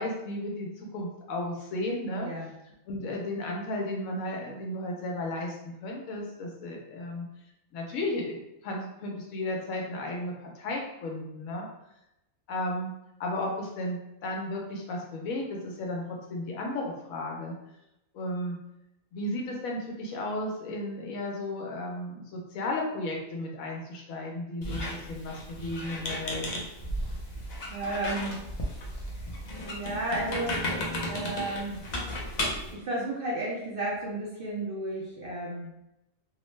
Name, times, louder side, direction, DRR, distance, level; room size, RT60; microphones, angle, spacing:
voice 1, 0.0-2.3 2.9-7.3 7.7-8.4 8.6-11.7 12.5-12.9 13.2-17.5 18.1-18.6 19.1-26.4, left 1 dB, 85° left, -1 dB, 1.0 m, -34 dB
voice 2, 2.1-2.5 27.7-28.4 29.1-29.3 29.6-31.9 32.7-35.7, right 2 dB, 55° right, -5 dB, 0.6 m, -33 dB
Squeak, 24.6-32.7, left 1 dB, 65° left, 0.4 m, -34 dB
2.8 x 2.0 x 3.1 m, 0.88 s
omnidirectional pair, 1.4 m